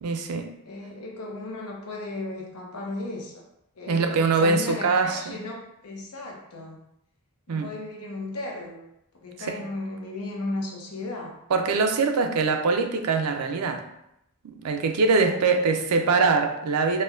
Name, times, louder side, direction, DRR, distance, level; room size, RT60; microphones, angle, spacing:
voice 1, 0.0-0.5 3.9-5.4 7.5-7.7 9.4-9.5 11.5-13.8 14.4-17.0, right 4 dB, 85° right, 6 dB, 0.4 m, -23 dB
voice 2, 0.7-3.4 3.8-6.8 7.5-8.9 9.2-11.4 15.2-15.7, left 2 dB, 85° left, 0 dB, 0.7 m, -35 dB
4.2 x 2.2 x 2.4 m, 0.81 s
head